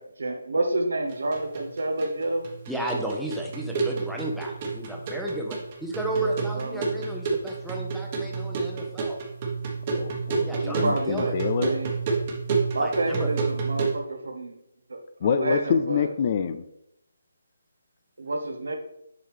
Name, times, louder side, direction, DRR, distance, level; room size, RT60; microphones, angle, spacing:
voice 1, 0.0-2.5 6.1-7.1 10.6-12.0 12.7-14.5 14.9-16.1 18.2-18.8, right 2 dB, 70° right, 4 dB, 1.1 m, -29 dB
sound 1, 1.1-14.0, right 4 dB, 35° right, 1.4 m, -30 dB
voice 2, 2.7-9.2 10.4-11.4 12.8-13.3, right 1 dB, ahead, -2 dB, 0.9 m, -33 dB
voice 3, 9.9-11.7 15.2-16.6, left 6 dB, 35° left, 10 dB, 0.4 m, -26 dB
7.5 x 4.7 x 3.4 m, 0.81 s
figure-of-eight pair, 155°, 0 cm